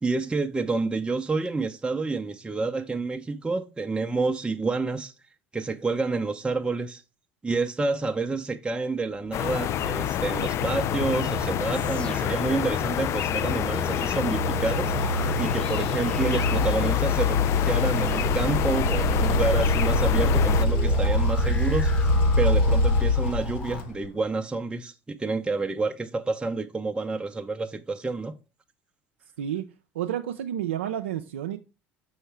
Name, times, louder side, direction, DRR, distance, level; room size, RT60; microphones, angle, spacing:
voice 1, 0.0-5.1 5.5-7.0 7.4-22.1 22.4-28.4, right 3 dB, 15° right, 0.6 m, -29 dB
sound 1, 9.3-20.7, left 11 dB, 50° left, 0.4 m, -28 dB
sound 2, 9.6-24.1, left 1 dB, 75° left, 1.0 m, -25 dB
sound 3, 11.7-23.8, left 3 dB, 20° left, 1.3 m, -40 dB
voice 2, 29.9-31.6, right 10 dB, 90° right, 0.4 m, -30 dB
6.3 x 5.5 x 3.3 m
hypercardioid pair, 70°, 6 cm